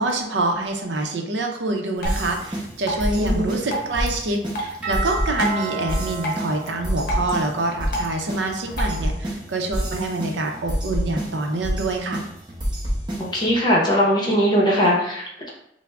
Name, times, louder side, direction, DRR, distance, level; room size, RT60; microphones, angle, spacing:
voice 1, 0.0-12.2, right 2 dB, 80° right, 3 dB, 0.6 m, -26 dB
Drip, 2.0-9.0, right 1 dB, 55° left, 0.7 m, -33 dB
sound 1, 2.0-13.6, equal, 25° right, 0.7 m, -29 dB
voice 2, 3.2-3.5 13.3-15.5, equal, 25° left, -3 dB, 0.8 m, -20 dB
Doorbell, 4.8-7.6, right 4 dB, 10° right, 1.3 m, -32 dB
5.7 x 2.0 x 2.3 m, 0.75 s
head